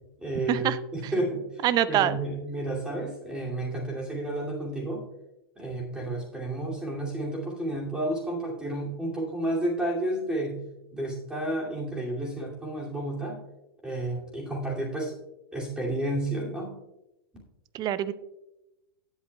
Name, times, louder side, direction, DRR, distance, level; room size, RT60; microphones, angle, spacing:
voice 1, 0.2-0.7 0.9-5.0 5.6-10.6 10.9-13.4 13.8-15.1 15.5-16.7, right 1 dB, 5° right, -3 dB, 2.5 m, -31 dB
voice 2, 1.6-2.2 17.7-18.1, right 12 dB, 35° right, 15 dB, 0.6 m, -25 dB
17.0 x 8.2 x 2.3 m, 0.92 s
hypercardioid pair, 115°, 12 cm